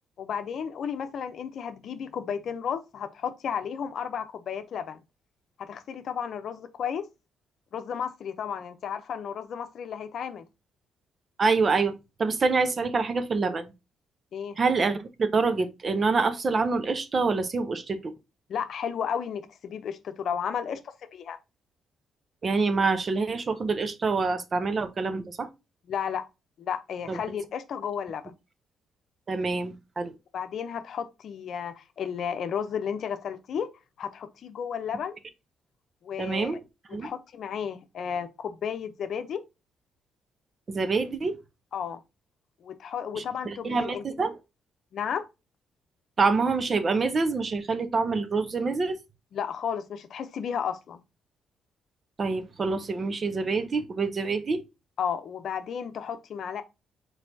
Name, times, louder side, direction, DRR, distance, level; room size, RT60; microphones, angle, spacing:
voice 1, 0.2-5.0 5.7-7.0 7.7-10.4 14.3-14.6 18.5-21.4 25.9-26.2 26.6-28.3 30.3-33.7 34.0-35.2 36.0-36.6 37.0-39.4 41.7-42.0 42.6-44.0 44.9-45.2 49.3-51.0 55.0-56.6, left 7 dB, 65° left, 0.7 m, -33 dB
voice 2, 11.4-11.9 12.2-13.7 14.6-18.0 22.4-25.5 27.1-27.2 29.3-30.1 36.2-36.6 36.9-37.1 40.7-41.4 43.2-44.4 46.2-49.0 52.2-54.6, right 4 dB, 40° right, 0.7 m, -26 dB
4.3 x 4.0 x 2.7 m
cardioid pair, 90°, 0 cm